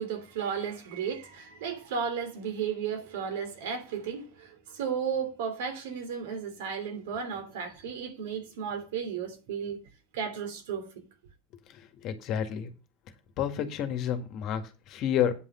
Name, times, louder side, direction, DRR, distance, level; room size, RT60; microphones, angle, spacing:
voice 1, 0.0-9.8 10.1-10.9, right 7 dB, 75° right, 3.2 m, -34 dB
voice 2, 11.7-12.7 13.4-15.3, left 9 dB, 55° left, 2.0 m, -30 dB
9.8 x 5.8 x 5.6 m
hypercardioid pair, 75°, 0 cm